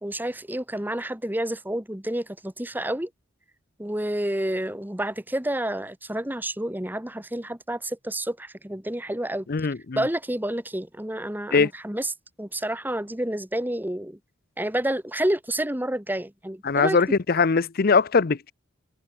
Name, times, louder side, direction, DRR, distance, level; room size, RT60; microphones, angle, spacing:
voice 1, 0.0-3.1 3.8-9.5 10.0-12.1 12.4-14.2 14.6-17.0, right 1 dB, 10° right, 1.4 m, -29 dB
voice 2, 9.5-10.0 11.5-11.7 16.6-18.5, left 4 dB, 45° left, 0.6 m, -21 dB
head